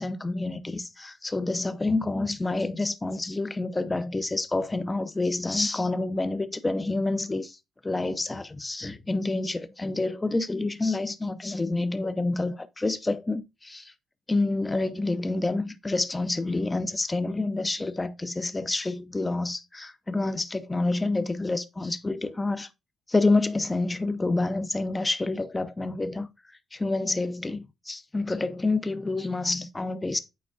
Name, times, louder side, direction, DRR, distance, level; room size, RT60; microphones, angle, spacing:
voice 1, 0.0-7.6 7.8-13.9 14.3-22.7 23.1-26.3 26.7-30.2, left 2 dB, 20° left, 0.6 m, -28 dB
8.7 x 4.5 x 2.5 m
cardioid pair, 90°, 0 cm